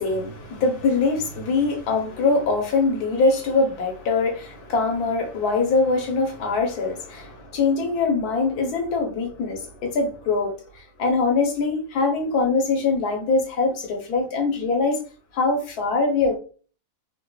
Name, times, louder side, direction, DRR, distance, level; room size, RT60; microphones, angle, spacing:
voice 1, 0.0-15.0 15.3-16.4, left 3 dB, 80° left, 1.4 m, -23 dB
4.0 x 2.5 x 2.3 m
omnidirectional pair, 1.6 m